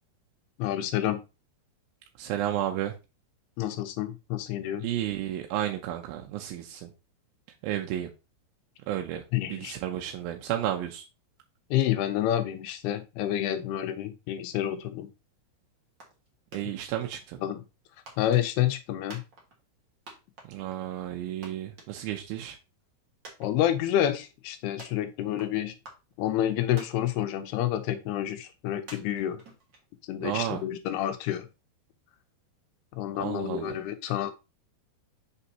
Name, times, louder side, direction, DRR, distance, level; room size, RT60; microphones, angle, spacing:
voice 1, 0.6-1.2 3.6-4.9 9.3-9.7 11.7-15.1 17.4-17.6 18.2-19.2 23.4-25.7 26.2-29.4 30.1-31.5 33.0-34.3, left 12 dB, 85° left, 2.8 m, -28 dB
voice 2, 2.2-2.9 4.8-6.9 7.6-8.1 8.9-9.2 9.5-11.0 16.5-17.4 20.5-22.6 30.2-30.6 33.2-33.8, right 12 dB, 80° right, 2.3 m, -32 dB
sound 1, 16.0-16.3 16.5-17.2 18.1-18.8 19.1-19.8 20.1-20.9 21.2-21.3 21.4-22.4 22.7-22.8 23.2-24.0 24.8-25.5 25.9-26.4 26.8-27.5 27.9-28.0 28.9-30.1, right 2 dB, 55° right, 1.3 m, -48 dB
6.1 x 5.5 x 2.8 m
omnidirectional pair, 4.6 m